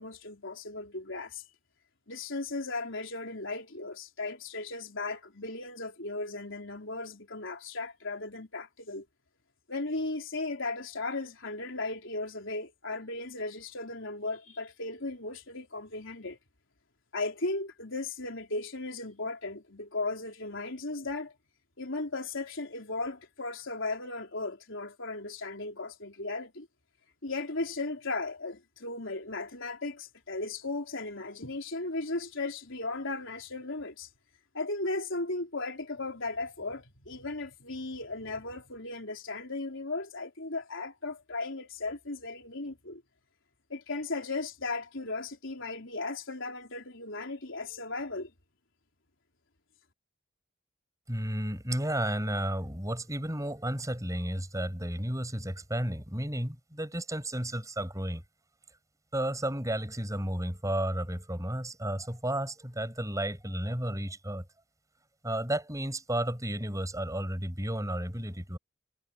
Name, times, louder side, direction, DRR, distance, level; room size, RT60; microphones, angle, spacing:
voice 1, 0.0-1.4 2.1-9.0 9.7-16.4 17.1-21.3 21.8-26.7 27.2-34.1 34.5-43.0 43.7-48.3, left 2 dB, 65° left, 4.1 m, -36 dB
voice 2, 51.1-58.2 59.1-64.4 65.2-68.6, right 1 dB, 15° right, 5.8 m, -32 dB
head